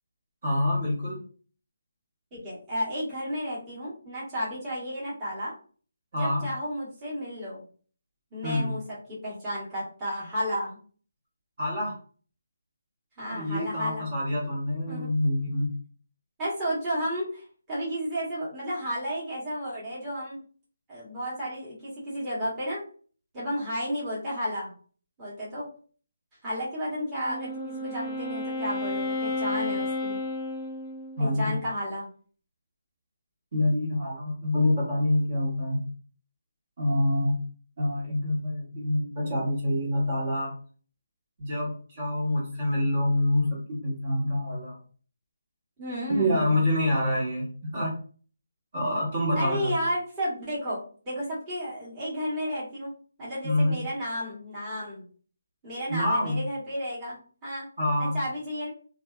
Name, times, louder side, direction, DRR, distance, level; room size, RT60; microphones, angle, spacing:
voice 1, 0.4-1.2 6.1-6.4 8.4-8.7 11.6-11.9 13.2-15.7 31.2-31.6 33.5-35.8 36.8-37.4 37.8-40.5 41.4-44.8 46.1-47.5 47.7-47.9 48.7-49.8 53.4-53.9 55.9-56.4 57.8-58.2, left 1 dB, 45° right, -4 dB, 1.3 m, -26 dB
voice 2, 2.3-5.5 6.2-7.6 8.3-8.8 9.1-10.8 13.2-14.0 14.9-15.1 16.4-20.4 20.9-22.8 23.3-24.7 25.2-25.7 26.4-30.2 31.2-32.1 45.8-46.6 49.3-50.8 51.0-52.9 53.2-55.0 55.6-57.6 58.0-58.7, equal, 15° right, -9 dB, 1.2 m, -32 dB
Wind instrument woodwind instrument, 27.0-31.4, left 2 dB, 10° left, 0.4 m, -32 dB
2.5 x 2.4 x 2.3 m, 0.41 s
figure-of-eight pair, 155°, 0 cm